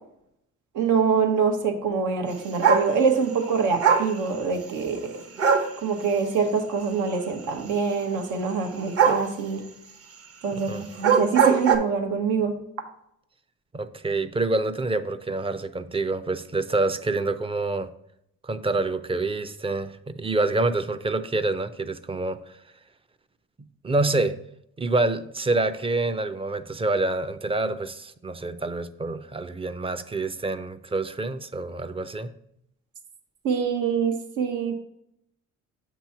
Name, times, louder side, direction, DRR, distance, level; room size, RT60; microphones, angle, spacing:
voice 1, 0.7-5.2 5.8-9.6 10.4-12.6 33.4-34.7, right 5 dB, 90° right, 5 dB, 1.1 m, -25 dB
sound 1, 2.6-2.9 3.8-4.1 5.4-5.7 9.0-9.3 10.9-11.8, right 6 dB, 50° right, 1.1 m, -19 dB
voice 2, 10.5-10.8 13.7-17.9 18.4-22.4 23.8-24.3 24.8-32.3, right 2 dB, 20° right, 10 dB, 0.4 m, -27 dB
7.3 x 3.0 x 5.7 m, 0.74 s
cardioid pair, 90°, 30 cm